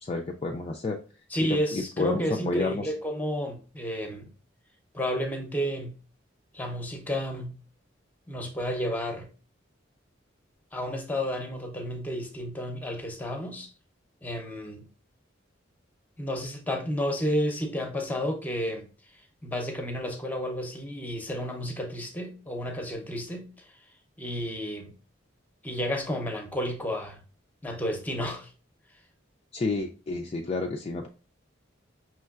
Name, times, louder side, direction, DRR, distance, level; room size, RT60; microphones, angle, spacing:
voice 1, 0.0-1.0 1.4-2.9 29.5-31.1, left 3 dB, 30° left, 0.3 m, -30 dB
voice 2, 1.3-4.3 4.9-6.0 6.5-7.6 8.3-9.3 10.7-13.7 14.2-14.8 16.2-18.9 19.4-23.7 24.2-24.9 25.6-27.2 27.6-28.5, equal, 10° left, 0.7 m, -31 dB
5.4 x 3.1 x 2.4 m
head